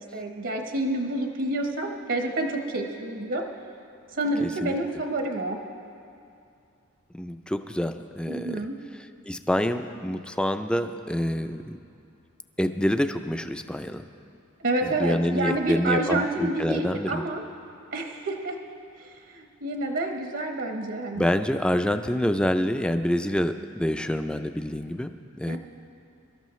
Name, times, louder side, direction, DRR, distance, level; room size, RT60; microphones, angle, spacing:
voice 1, 0.0-3.5 4.1-5.6 8.3-8.8 14.6-17.4 17.9-18.6 19.0-21.3 25.5-25.6, right 2 dB, 65° right, 3 dB, 1.0 m, -28 dB
voice 2, 4.4-4.7 7.1-8.7 9.2-11.6 12.6-14.0 14.8-17.2 21.2-25.6, equal, 5° left, 8 dB, 0.4 m, -27 dB
23.5 x 13.0 x 3.1 m, 2.5 s
head